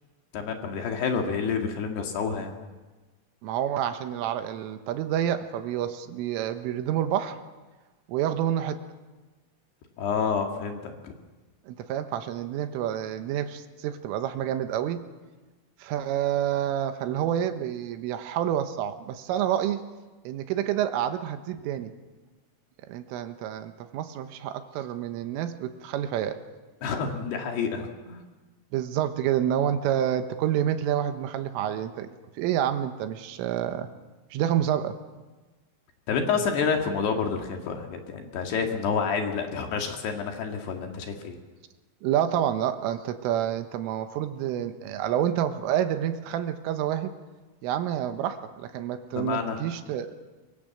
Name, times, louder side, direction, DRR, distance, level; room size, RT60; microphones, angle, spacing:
voice 1, 0.3-2.5 10.0-11.1 26.8-28.2 36.1-41.4 49.1-49.6, left 6 dB, 60° left, 3 dB, 3.7 m, -28 dB
voice 2, 3.4-7.4 8.1-8.8 11.7-15.0 15.8-19.8 20.3-21.9 22.9-26.4 28.7-32.1 32.4-33.9 34.3-35.0 42.0-47.1 47.6-50.2, right 10 dB, 80° right, 8 dB, 3.7 m, -28 dB
24.5 x 24.0 x 7.6 m, 1.2 s
omnidirectional pair, 5.8 m